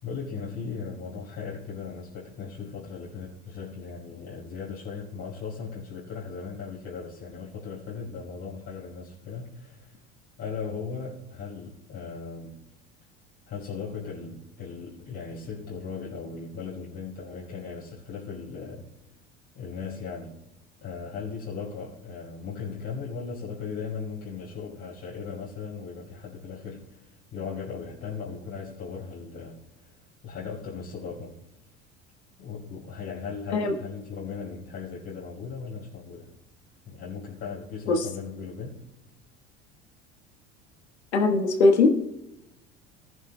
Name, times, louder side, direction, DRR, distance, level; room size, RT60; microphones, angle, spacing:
voice 1, 0.0-9.9 10.4-12.6 13.5-18.8 19.5-20.4 20.8-29.9 30.2-31.3 32.4-36.3 36.8-38.8, left 5 dB, 50° left, -6 dB, 4.7 m, -37 dB
voice 2, 41.1-41.9, left 3 dB, 85° left, 4 dB, 1.4 m, -20 dB
18.5 x 11.0 x 2.2 m, 0.93 s
hypercardioid pair, 70°, 32 cm